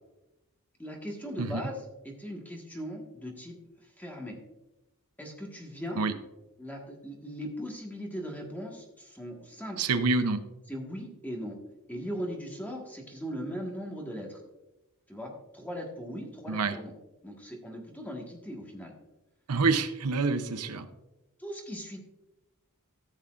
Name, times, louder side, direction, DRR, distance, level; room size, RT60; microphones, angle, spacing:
voice 1, 0.8-3.6 4.0-4.4 5.2-6.0 6.6-9.8 10.7-11.6 11.9-14.4 15.1-16.9 17.2-18.9 21.4-22.0, equal, 10° left, 0 dB, 1.5 m, -39 dB
voice 2, 1.4-1.7 6.0-6.1 9.8-10.4 16.5-16.8 19.5-20.9, right 4 dB, 85° right, 10 dB, 0.7 m, -27 dB
14.0 x 7.1 x 2.5 m, 0.99 s
head